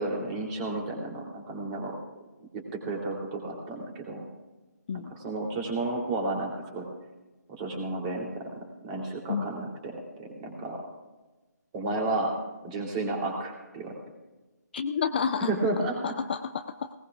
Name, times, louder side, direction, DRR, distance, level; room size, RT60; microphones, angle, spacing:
voice 1, 0.0-1.9 2.5-4.3 4.9-6.9 7.5-8.4 8.8-10.8 11.7-12.3 12.6-13.9 15.4-16.0, right 2 dB, 20° right, 0 dB, 3.1 m, -32 dB
voice 2, 14.7-15.5 16.0-16.9, left 6 dB, 30° left, 9 dB, 0.5 m, -30 dB
20.0 x 19.0 x 2.4 m, 1.2 s
figure-of-eight pair, 160°, 10 cm